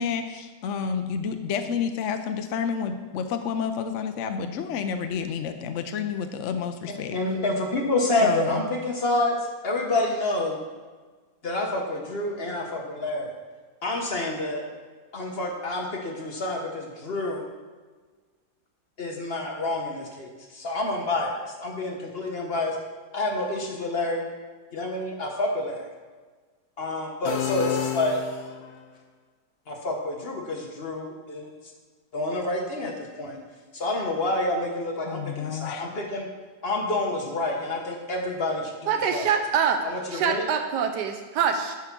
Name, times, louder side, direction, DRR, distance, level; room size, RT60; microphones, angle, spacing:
voice 1, 0.0-7.2 8.2-8.6 35.0-35.9, left 6 dB, 70° left, 7 dB, 0.7 m, -29 dB
voice 2, 6.9-9.3 9.6-10.6 11.4-13.3 13.8-14.6 15.1-17.4 19.0-22.8 23.1-24.3 24.7-25.9 26.8-28.2 29.7-31.5 32.1-33.4 33.7-36.3 36.6-39.3 39.8-40.4, left 2 dB, 40° left, 1 dB, 1.1 m, -28 dB
sound 1, 27.2-28.8, left 9 dB, 85° left, 1.4 m, -30 dB
voice 3, 38.9-39.8 40.1-41.8, right 7 dB, 75° right, 6 dB, 1.3 m, -25 dB
9.7 x 4.5 x 6.0 m, 1.4 s
omnidirectional pair, 1.8 m